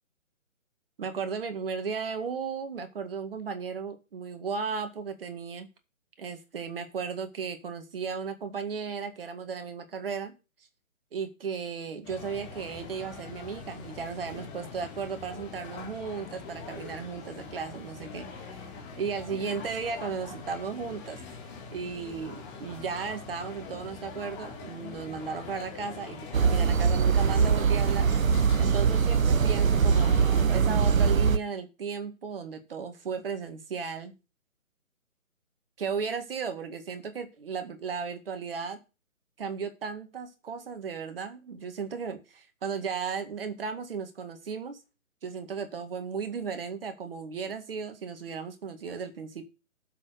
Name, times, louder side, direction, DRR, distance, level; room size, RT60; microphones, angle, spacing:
voice 1, 1.0-5.7 6.2-10.3 11.1-18.6 19.0-21.2 21.7-28.1 28.6-34.1 35.8-38.8 39.4-44.8 45.2-49.4, right 6 dB, 45° right, 8 dB, 1.9 m, -35 dB
sound 1, 12.0-30.4, left 4 dB, 20° left, 2.5 m, -43 dB
sound 2, 26.3-31.4, right 6 dB, 75° right, 0.9 m, -22 dB
7.6 x 6.2 x 6.6 m, 0.30 s
figure-of-eight pair, 150°, 41 cm